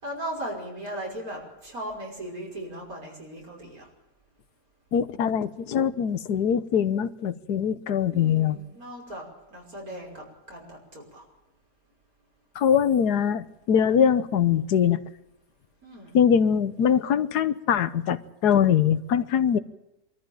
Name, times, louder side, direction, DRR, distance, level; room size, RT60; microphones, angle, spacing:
voice 1, 0.0-3.9 8.1-9.2 9.5-11.2 15.8-16.2, right 1 dB, 65° right, -1 dB, 6.2 m, -37 dB
voice 2, 4.9-8.6 12.5-15.0 16.1-19.6, left 8 dB, 90° left, 14 dB, 1.5 m, -22 dB
23.5 x 14.0 x 9.0 m, 0.92 s
omnidirectional pair, 1.7 m